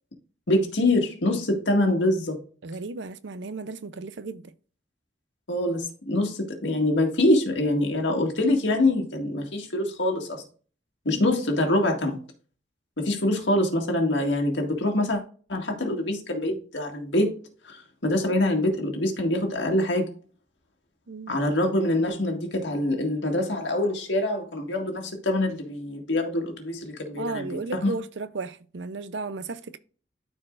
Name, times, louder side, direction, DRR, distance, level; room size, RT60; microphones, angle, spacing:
voice 1, 0.5-2.4 5.5-10.4 11.1-12.2 13.0-15.2 15.5-17.3 17.6-20.1 21.3-27.9, left 1 dB, 80° left, 1.9 m, -25 dB
voice 2, 2.6-4.4 11.1-11.4 21.1-21.4 27.2-29.8, right 3 dB, 80° right, 0.6 m, -34 dB
13.0 x 4.6 x 2.5 m
head